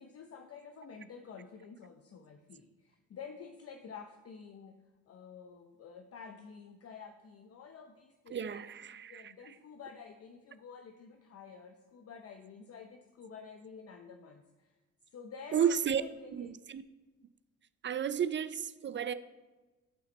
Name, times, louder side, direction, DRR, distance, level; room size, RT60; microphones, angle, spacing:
voice 1, 0.0-8.6 8.9-14.7 15.1-16.6, left 6 dB, 50° left, 5 dB, 0.7 m, -50 dB
voice 2, 8.3-9.3 15.5-16.0 16.3-16.8 17.8-19.1, right 8 dB, 40° right, 14 dB, 0.5 m, -32 dB
11.0 x 5.7 x 4.2 m, 1.2 s
cardioid pair, 90°, 30 cm